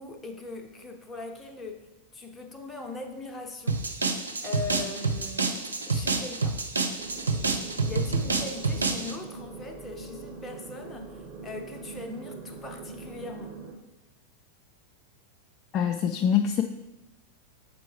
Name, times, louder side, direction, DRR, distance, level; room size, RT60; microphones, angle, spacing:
voice 1, 0.0-3.8 4.4-6.6 7.9-13.6, left 3 dB, 15° left, 4 dB, 0.7 m, -40 dB
sound 1, 3.7-9.2, right 4 dB, 75° right, 0.5 m, -28 dB
sound 2, 7.0-13.7, right 4 dB, 20° right, 1.2 m, -42 dB
voice 2, 15.7-16.6, left 8 dB, 35° left, 4 dB, 0.3 m, -24 dB
6.7 x 4.5 x 3.2 m, 0.95 s
figure-of-eight pair, 90°, 0 cm